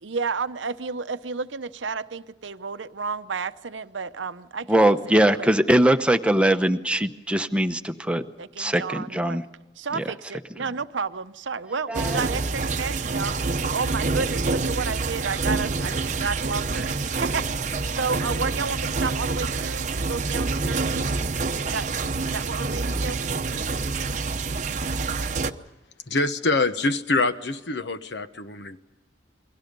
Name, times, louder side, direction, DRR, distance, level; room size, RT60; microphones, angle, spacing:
voice 1, 0.0-4.7 5.4-5.5 8.4-9.4 9.8-21.1 21.6-23.2, right 4 dB, 90° right, 0.8 m, -31 dB
voice 2, 4.7-8.2 8.6-9.4 9.9-10.1 11.9-12.2, right 1 dB, 5° right, 0.9 m, -21 dB
sound 1, 11.9-25.5, right 3 dB, 40° right, 0.8 m, -27 dB
voice 3, 26.1-28.8, left 3 dB, 65° left, 1.2 m, -25 dB
29.0 x 22.0 x 5.4 m
head